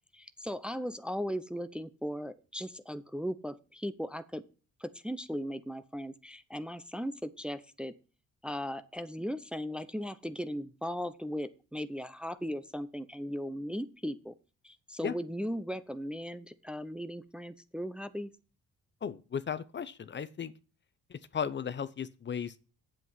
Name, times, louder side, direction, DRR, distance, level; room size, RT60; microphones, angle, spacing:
voice 1, 0.1-4.4 4.8-7.9 8.4-14.3 14.6-18.3, equal, 5° right, 0.6 m, -37 dB
voice 2, 19.0-20.5 21.1-22.6, left 7 dB, 40° left, 0.7 m, -36 dB
8.2 x 7.6 x 5.7 m
cardioid pair, 90°, 30 cm